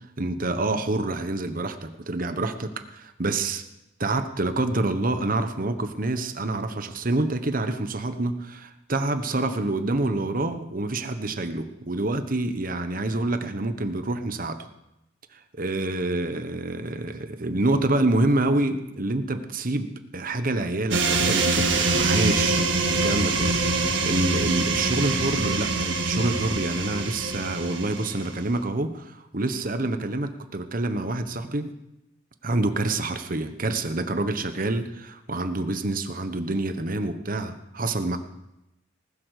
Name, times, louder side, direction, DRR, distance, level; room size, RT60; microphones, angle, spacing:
voice 1, 0.2-3.6 4.0-14.7 15.5-22.6 22.9-31.7 32.4-38.2, right 2 dB, 45° right, 8 dB, 1.2 m, -27 dB
sound 1, 20.9-28.5, right 3 dB, 75° right, 1.9 m, -24 dB
19.5 x 8.1 x 6.6 m, 0.88 s
head